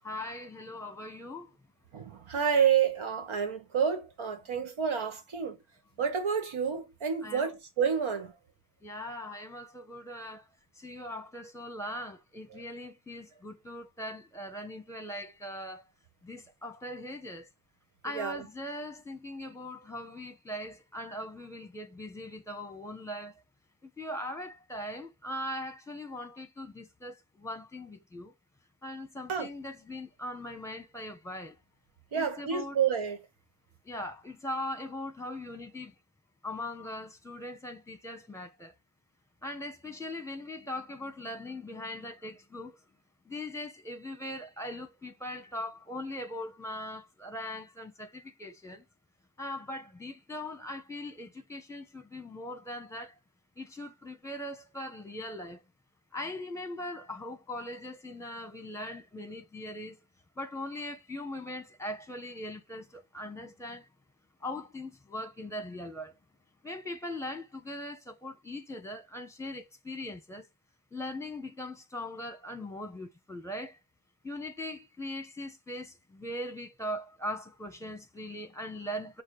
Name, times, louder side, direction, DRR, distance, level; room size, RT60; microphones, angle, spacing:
voice 1, 0.0-1.6 4.6-4.7 7.2-7.5 8.8-10.5 10.8-15.8 16.2-17.5 18.0-23.4 23.8-28.3 28.8-31.6 32.1-32.8 33.8-35.9 36.4-38.7 39.4-42.8 43.2-48.8 49.4-53.2 53.6-55.6 56.1-60.0 60.4-63.9 64.4-66.2 66.6-70.5 70.9-73.8 74.2-79.2, left 1 dB, 5° left, 0.9 m, -40 dB
voice 2, 1.9-5.6 6.0-8.3 12.5-12.6 18.1-18.4 29.3-29.5 32.1-33.2, right 7 dB, 90° right, 1.2 m, -29 dB
6.4 x 2.2 x 3.2 m
cardioid pair, 65°, 47 cm